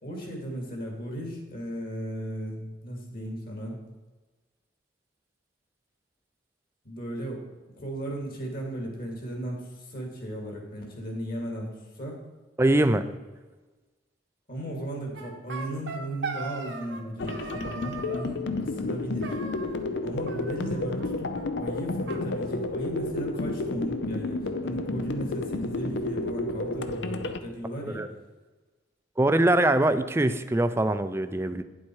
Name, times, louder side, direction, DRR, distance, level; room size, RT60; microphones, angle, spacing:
voice 1, 0.0-3.8 6.8-7.4 7.7-12.2 14.5-19.4 20.0-28.0, right 1 dB, 55° left, 1 dB, 2.5 m, -36 dB
voice 2, 12.6-13.0 27.9-28.1 29.2-31.6, right 1 dB, 15° right, 10 dB, 0.4 m, -23 dB
sound 1, 15.1-17.0 17.3-18.3 19.2-20.0 20.3-21.1 21.3-21.4 21.7-21.8 22.1-23.1, right 3 dB, 80° right, 1.4 m, -39 dB
sound 2, 17.2-27.4, left 2 dB, 70° left, 0.6 m, -31 dB
9.7 x 7.4 x 4.7 m, 1.3 s
head